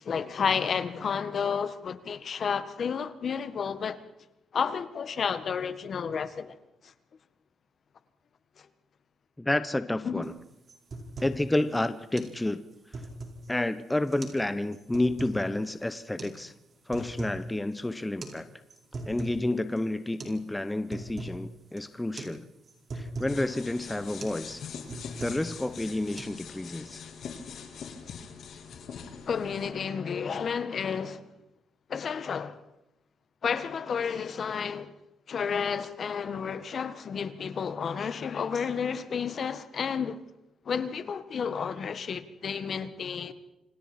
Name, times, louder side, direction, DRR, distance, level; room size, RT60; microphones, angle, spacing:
voice 1, 0.0-4.0 4.5-6.6 6.8-6.9 10.0-10.3 29.3-31.2 31.9-32.6 33.4-34.9 35.3-40.2 40.6-43.3, left 6 dB, 50° left, 1.5 m, -31 dB
voice 2, 9.4-10.3 11.2-12.6 13.5-16.5 16.9-18.5 19.1-22.4 22.9-24.6 25.2-27.0, left 1 dB, 10° left, 1.0 m, -30 dB
sound 1, 10.2-10.4 10.7-11.4 11.7-11.8 12.2-12.4 12.7-13.5 14.1-14.4 14.7-15.4 16.2-16.4 16.7-17.4 17.7-17.8 18.2-18.4 18.7-19.4 19.8-19.9 20.2-20.4 20.7-21.4 21.8-21.9 22.2-22.4 22.6-23.4 23.8-23.9 24.2-24.4 24.7-25.5 25.8-26.2, right 2 dB, 40° right, 4.8 m, -39 dB
sound 2, 23.3-29.7, left 6 dB, 65° left, 3.7 m, -43 dB
28.5 x 25.5 x 4.5 m
cardioid pair, 90°, 0 cm